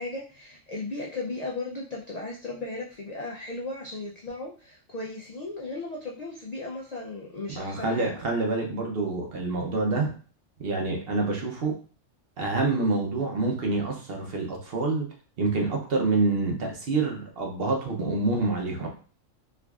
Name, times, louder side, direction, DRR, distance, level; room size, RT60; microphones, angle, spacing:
voice 1, 0.0-8.1, left 2 dB, 70° left, -2 dB, 0.4 m, -36 dB
voice 2, 7.5-10.1 10.6-11.7 12.4-15.1 15.4-18.9, right 3 dB, 55° right, 1 dB, 0.9 m, -27 dB
4.5 x 2.5 x 2.3 m, 0.40 s
omnidirectional pair, 1.3 m